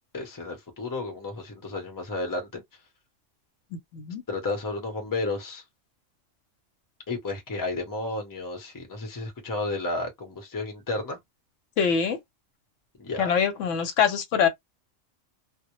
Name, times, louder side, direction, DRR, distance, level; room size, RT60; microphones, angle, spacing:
voice 1, 0.1-2.6 4.3-5.6 7.1-11.2 13.0-13.3, left 2 dB, 20° left, 0.6 m, -32 dB
voice 2, 11.8-12.2 13.2-14.5, left 7 dB, 85° left, 1.0 m, -24 dB
2.1 x 2.0 x 2.9 m
omnidirectional pair, 1.3 m